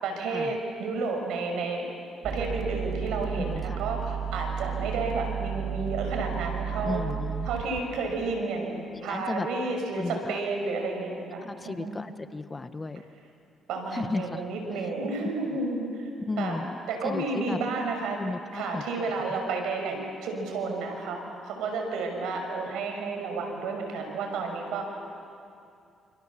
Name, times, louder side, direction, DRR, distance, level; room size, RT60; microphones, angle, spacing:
voice 1, 0.0-1.9 2.2-7.0 7.5-12.0 13.7-16.1 16.4-16.6 16.9-18.2 18.5-25.0, right 3 dB, 90° right, 3 dB, 6.1 m, -31 dB
sound 1, 2.2-7.8, right 8 dB, 45° right, 2.7 m, -33 dB
voice 2, 3.4-3.8 6.8-7.5 9.1-9.5 10.0-10.4 11.4-13.0 13.9-14.5 16.3-16.8 17.0-17.6 18.2-18.8 19.3-19.4, left 3 dB, 25° left, 10 dB, 1.3 m, -34 dB
28.5 x 28.0 x 7.4 m, 2.5 s
cardioid pair, 90°, 0 cm